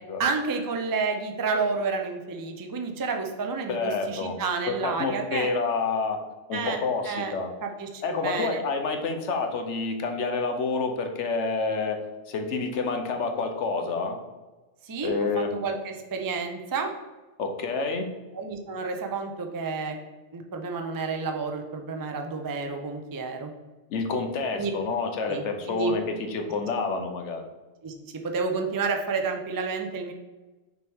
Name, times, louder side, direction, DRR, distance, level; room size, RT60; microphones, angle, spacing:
voice 1, 0.2-5.5 6.5-6.8 7.0-7.3 7.6-8.6 14.9-16.9 18.3-20.0 20.3-23.5 24.5-24.7 25.3-25.9 27.8-27.9 28.2-30.1, right 4 dB, 30° right, 4 dB, 0.4 m, -30 dB
voice 2, 3.7-4.4 4.7-6.2 6.5-7.5 8.0-12.0 12.3-14.2 15.0-15.5 17.4-18.1 23.9-27.4, left 4 dB, 80° left, 5 dB, 1.1 m, -28 dB
6.1 x 4.6 x 3.5 m, 1.2 s
omnidirectional pair, 1.2 m